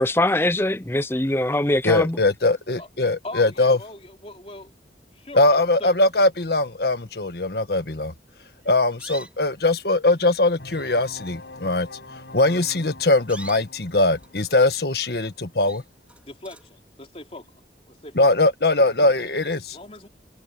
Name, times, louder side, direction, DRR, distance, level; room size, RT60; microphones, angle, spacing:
voice 1, 0.0-2.2, left 1 dB, 15° left, 0.6 m, -22 dB
voice 2, 1.8-3.8 5.3-8.1 8.6-11.9 12.3-15.8 18.1-19.6, left 2 dB, 65° left, 1.6 m, -21 dB
voice 3, 3.2-4.7 5.1-5.5 5.8-6.0 16.2-17.5 17.9-18.3 19.7-20.1, left 2 dB, 35° left, 3.7 m, -40 dB
sound 1, 8.6-9.6 10.3-10.4 10.6-11.0 11.2-11.5 12.4-12.6 13.1-14.8 15.2-15.3 15.6-16.8, right 2 dB, 10° right, 4.8 m, -44 dB
sound 2, 10.6-16.2, left 2 dB, 85° left, 5.9 m, -44 dB
head